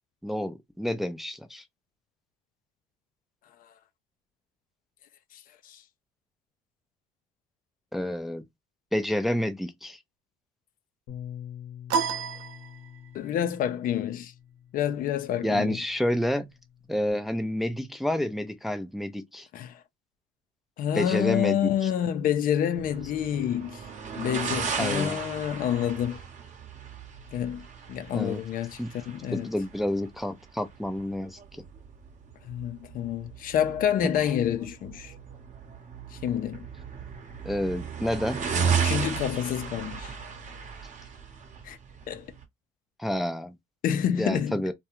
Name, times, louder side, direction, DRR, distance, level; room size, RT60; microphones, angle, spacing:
voice 1, 0.2-1.6 7.9-8.4 8.9-10.0 15.4-16.5 16.9-19.5 20.9-21.9 24.8-25.2 28.1-28.4 28.8-28.9 29.3-31.6 34.1-34.3 37.4-38.5 43.0-43.6 44.2-44.7, left 1 dB, ahead, 0.4 m, -29 dB
voice 2, 5.3-5.8 13.1-14.3 14.7-15.8 19.5-19.8 20.8-23.8 24.2-26.2 27.3-29.5 32.4-35.1 36.1-36.7 38.8-40.2 41.6-41.8 42.1-42.3 43.8-44.6, left 10 dB, 55° left, 0.5 m, -28 dB
Bass guitar, 11.1-17.3, left 10 dB, 70° left, 0.8 m, -46 dB
sound 1, 11.9-13.3, right 6 dB, 75° right, 0.5 m, -30 dB
sound 2, 22.7-42.4, right 6 dB, 45° right, 0.9 m, -35 dB
2.3 x 2.2 x 2.9 m
supercardioid pair, 80°, 17 cm